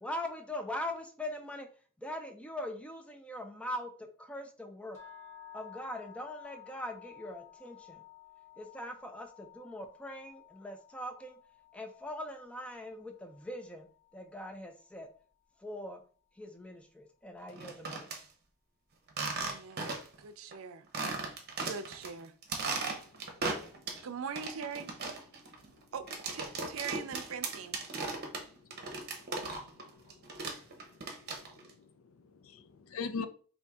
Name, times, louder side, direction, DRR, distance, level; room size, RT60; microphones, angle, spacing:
voice 1, 0.0-1.7 2.0-5.0 5.5-8.0 8.6-11.4 11.7-13.9 14.1-15.1 15.6-16.0 16.4-18.1, left 1 dB, 5° left, 0.6 m, -41 dB
sound 1, 4.9-15.0, left 11 dB, 35° left, 1.2 m, -55 dB
sound 2, 17.5-18.2 19.1-20.2 20.5-20.6 20.9-22.1 22.4-24.0 24.4-29.8 30.1-31.7, right 3 dB, 50° right, 0.8 m, -37 dB
voice 2, 19.4-20.8 21.6-22.3 24.0-24.9 25.9-26.1 26.3-27.8, right 6 dB, 85° right, 0.5 m, -41 dB
voice 3, 28.0-30.0 30.5-31.0 31.3-33.3, left 5 dB, 80° left, 0.5 m, -45 dB
4.3 x 2.8 x 3.5 m
head